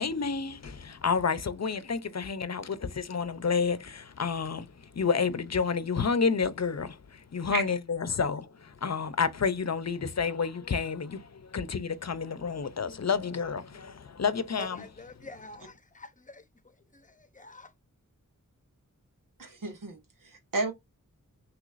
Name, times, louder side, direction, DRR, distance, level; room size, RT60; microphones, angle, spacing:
voice 1, 0.0-14.8, left 5 dB, 55° left, 0.7 m, -30 dB
voice 2, 14.6-17.7, left 2 dB, 25° left, 0.8 m, -47 dB
voice 3, 19.4-20.7, right 3 dB, 80° right, 1.4 m, -32 dB
6.1 x 3.1 x 2.5 m
wide cardioid pair, 80°, 32 cm